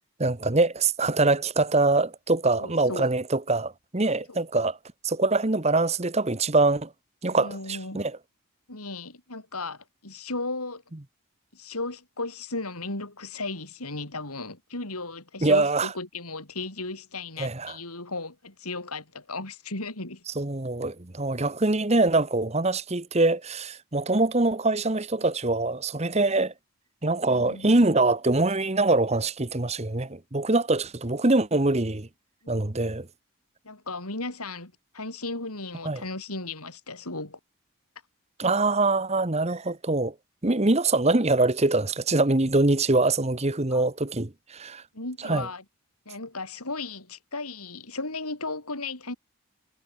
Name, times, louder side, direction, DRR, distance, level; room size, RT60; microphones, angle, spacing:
voice 1, 0.2-4.8 5.0-6.9 7.2-8.2 15.4-15.9 17.4-17.7 20.4-26.5 27.0-32.1 32.5-33.1 35.8-36.0 38.4-40.1 40.4-44.8 45.2-45.5, right 2 dB, 30° right, 1.1 m, -24 dB
voice 2, 2.5-3.1 4.3-4.4 7.3-8.0 8.7-10.8 11.5-20.2 27.2-27.8 32.4-32.5 33.6-37.4 43.7-43.9 44.9-45.6 46.1-49.1, left 3 dB, 85° left, 5.9 m, -35 dB
head